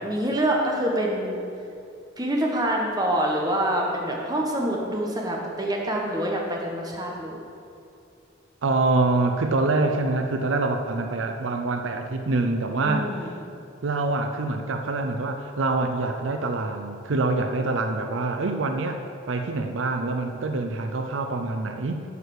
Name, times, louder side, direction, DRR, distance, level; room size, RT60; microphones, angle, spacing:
voice 1, 0.0-1.4 2.2-7.4 12.8-13.3, right 1 dB, 20° right, -1 dB, 1.1 m, -26 dB
voice 2, 8.6-13.1 13.8-19.0 19.3-22.0, right 3 dB, 75° right, 6 dB, 0.6 m, -25 dB
9.7 x 4.9 x 6.4 m, 2.5 s
head